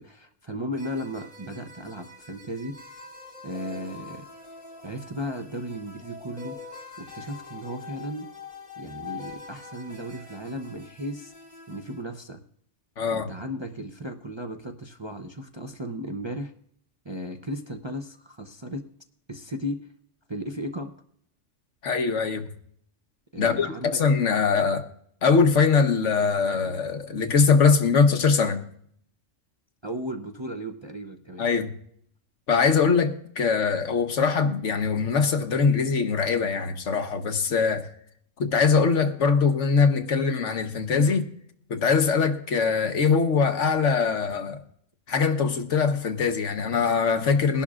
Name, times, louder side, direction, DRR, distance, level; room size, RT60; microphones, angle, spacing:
voice 1, 0.0-2.8 3.4-4.2 4.8-6.6 7.0-8.3 8.8-11.3 11.7-12.4 13.1-16.5 17.0-18.9 19.3-19.9 20.3-20.9 23.3-24.0 29.8-31.4, equal, 30° right, 0.6 m, -35 dB
sound 1, 0.7-12.0, left 4 dB, 35° left, 2.4 m, -44 dB
voice 2, 13.0-13.3 21.8-22.5 23.4-24.8 25.2-28.6 31.4-31.7 32.5-37.9 38.4-41.3 41.7-44.6 45.1-47.6, left 5 dB, 70° left, 1.4 m, -22 dB
22.0 x 11.5 x 2.4 m
omnidirectional pair, 1.3 m